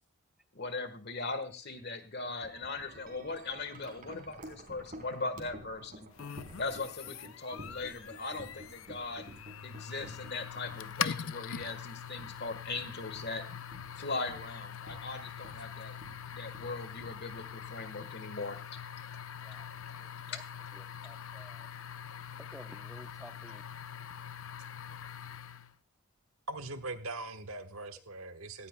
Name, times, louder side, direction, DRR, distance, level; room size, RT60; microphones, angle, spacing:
voice 1, 0.5-6.1 6.6-9.3 9.6-13.4 14.0-16.0 16.3-18.6 20.3-20.4, left 3 dB, 50° left, 10 dB, 1.5 m, -39 dB
Wind chime, 2.3-18.5, equal, 40° right, 3.6 m, -52 dB
sound 1, 6.2-25.7, left 8 dB, 70° left, 0.6 m, -43 dB
voice 2, 20.0-20.4 20.7-21.7 22.5-23.6, equal, 5° right, 7 dB, 0.8 m, -53 dB
voice 3, 26.5-28.7, right 2 dB, 70° right, 8 dB, 1.3 m, -41 dB
17.0 x 15.0 x 2.3 m, 0.31 s
head